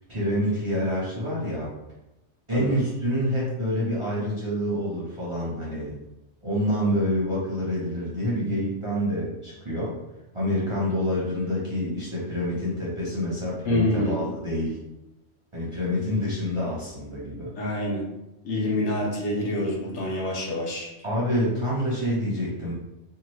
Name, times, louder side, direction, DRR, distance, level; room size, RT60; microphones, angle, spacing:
voice 1, 0.1-1.7 2.5-6.0 6.4-9.9 10.3-14.8 15.5-17.5 21.0-22.7, equal, 30° right, -7 dB, 0.7 m, -27 dB
voice 2, 13.6-14.2 17.6-18.0 18.4-20.9, left 1 dB, 70° left, -2 dB, 1.0 m, -26 dB
2.8 x 2.4 x 3.0 m, 0.93 s
omnidirectional pair, 1.3 m